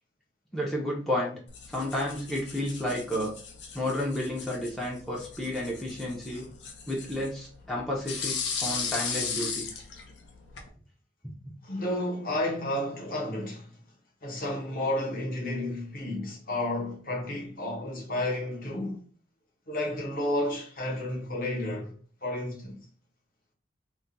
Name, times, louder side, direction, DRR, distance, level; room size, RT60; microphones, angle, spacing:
voice 1, 0.5-1.4 1.7-3.4 3.7-6.5 6.9-9.7, left 1 dB, ahead, 0.5 m, -31 dB
sound 1, 1.5-10.7, left 6 dB, 80° left, 0.6 m, -37 dB
voice 2, 11.6-13.8 14.2-19.0 19.7-21.9 22.2-22.8, left 1 dB, 50° left, 0.8 m, -31 dB
2.3 x 2.1 x 3.8 m
head